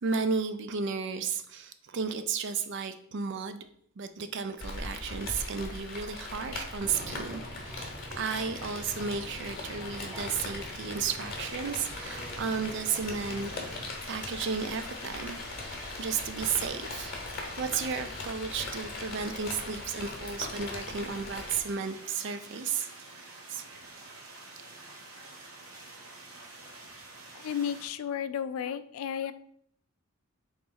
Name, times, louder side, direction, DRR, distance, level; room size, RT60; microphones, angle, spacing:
voice 1, 0.0-3.7 4.0-13.5 14.1-15.4 15.7-17.1 17.6-23.7, right 5 dB, 55° right, 10 dB, 0.4 m, -33 dB
Rain, 4.6-21.6, left 2 dB, 40° left, 0.9 m, -40 dB
sound 1, 6.8-13.9, equal, 15° right, 0.8 m, -45 dB
sound 2, 11.3-27.9, right 2 dB, 70° right, 1.0 m, -48 dB
voice 2, 27.3-29.3, left 8 dB, 75° left, 13 dB, 0.3 m, -33 dB
3.8 x 2.9 x 3.8 m, 0.64 s
head